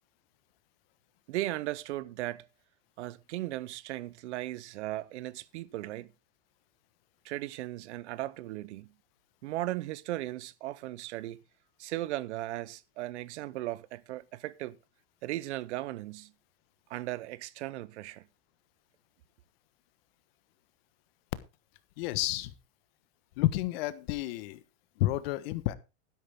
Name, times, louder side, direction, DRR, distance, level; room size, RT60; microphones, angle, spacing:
voice 1, 1.3-2.5 3.0-6.1 7.2-8.9 9.4-11.4 11.8-14.8 15.2-16.3 16.9-18.3, right 16 dB, 70° right, 0.9 m, -37 dB
voice 2, 22.0-22.5 23.4-24.6 25.0-25.7, left 16 dB, 55° left, 1.4 m, -30 dB
12.0 x 10.5 x 3.7 m
supercardioid pair, 160°, 35 cm